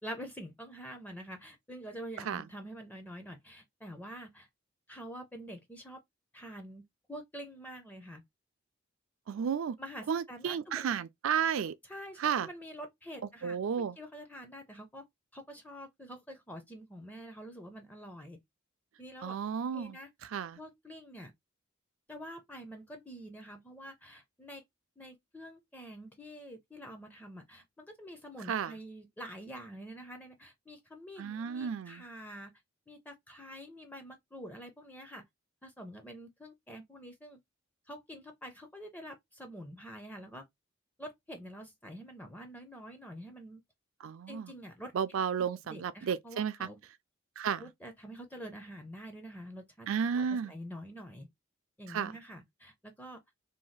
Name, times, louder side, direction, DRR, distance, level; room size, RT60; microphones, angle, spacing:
voice 1, 0.0-4.5 4.9-6.0 6.3-6.8 7.1-8.2 9.8-10.9 11.8-15.1 15.3-18.4 19.0-19.4 19.7-20.1 20.6-21.3 22.1-24.6 25.0-32.5 32.9-35.3 35.6-37.4 37.9-40.5 41.0-43.6 44.3-44.9 45.4-46.8 47.6-49.9 50.1-51.3 51.8-53.2, equal, 10° left, 0.4 m, -47 dB
voice 2, 9.3-9.8 10.1-11.7 12.2-12.5 13.4-14.0 19.2-20.0 20.3-20.6 28.5-28.7 31.2-32.0 44.0-44.5 44.9-46.5 47.4-47.6 49.9-50.5 51.9-52.1, right 7 dB, 75° right, 0.4 m, -32 dB
2.7 x 2.2 x 3.1 m
head